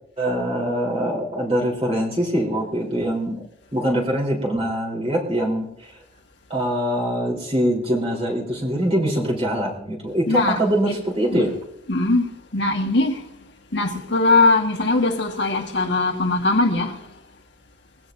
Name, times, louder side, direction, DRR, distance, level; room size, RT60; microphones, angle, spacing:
voice 1, 0.2-3.4 3.7-5.9 6.5-11.5, equal, 30° right, 3.8 m, -23 dB
voice 2, 10.3-10.9 11.3-11.5 11.9-12.3 12.5-13.2 13.7-16.9, left 2 dB, 60° left, 1.6 m, -20 dB
22.5 x 16.0 x 2.7 m
head